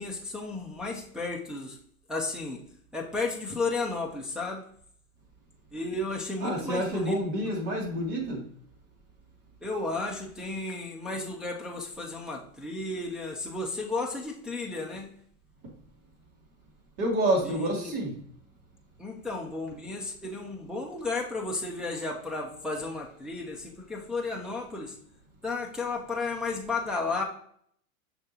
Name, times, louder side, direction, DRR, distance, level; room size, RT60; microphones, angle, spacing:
voice 1, 0.0-1.8 2.1-2.6 2.9-4.6 5.7-7.2 9.6-15.1 17.4-18.0 19.0-25.0 25.4-27.2, left 3 dB, ahead, -2 dB, 0.4 m, -33 dB
voice 2, 6.4-8.5 17.0-18.2, right 1 dB, 45° right, 0 dB, 2.7 m, -28 dB
6.3 x 5.9 x 2.9 m, 0.62 s
supercardioid pair, 135°, 43 cm